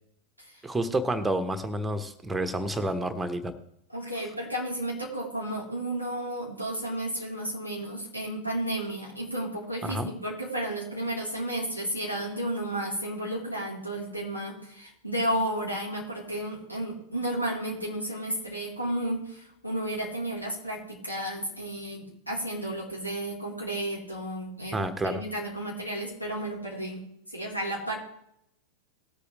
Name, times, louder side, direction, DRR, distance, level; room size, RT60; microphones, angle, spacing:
voice 1, 0.6-3.5 9.8-10.1 24.7-25.2, right 1 dB, 10° right, 9 dB, 1.2 m, -29 dB
voice 2, 3.9-27.0 27.3-27.9, right 1 dB, 90° left, -4 dB, 3.8 m, -32 dB
19.0 x 8.3 x 3.2 m, 0.76 s
figure-of-eight pair, 90°, 0 cm